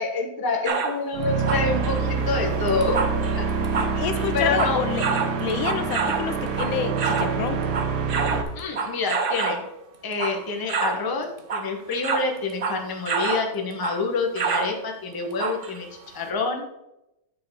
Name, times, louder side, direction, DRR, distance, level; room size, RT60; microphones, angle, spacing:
voice 1, 0.0-3.0 3.3-3.4 4.3-4.8 8.5-9.6 10.0-16.6, left 3 dB, 15° left, 2 dB, 0.7 m, -27 dB
sound 1, 0.6-1.0 1.4-7.4 7.6-9.6 10.1-10.4 10.7-11.0 11.4-13.5 13.8-14.0 14.3-14.8 15.4-15.8 16.2-16.3, right 5 dB, 75° right, 0.5 m, -28 dB
sound 2, 1.1-8.4, right 5 dB, 60° right, 1.3 m, -26 dB
voice 2, 3.7-5.1 5.4-7.6 8.3-8.4, left 8 dB, 75° left, 9 dB, 1.4 m, -29 dB
9.3 x 4.7 x 5.4 m, 0.89 s
omnidirectional pair, 2.3 m